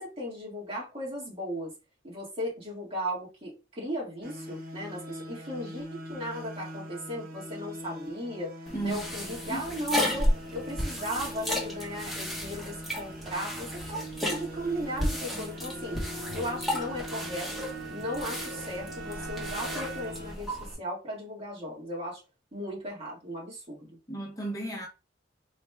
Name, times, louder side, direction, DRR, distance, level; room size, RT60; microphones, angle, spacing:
voice 1, 0.0-1.7 2.0-8.5 8.8-16.0 16.3-17.5 17.9-22.2 22.5-23.9, equal, 35° right, 1.8 m, -36 dB
sound 1, 4.2-20.4, equal, 55° right, 1.0 m, -42 dB
voice 2, 8.7-9.7 24.1-24.9, right 2 dB, 20° left, 0.8 m, -35 dB
sound 2, 8.7-20.7, equal, ahead, 1.2 m, -34 dB
Bowed string instrument, 15.5-20.3, right 3 dB, 75° right, 0.5 m, -43 dB
4.8 x 3.2 x 2.3 m
head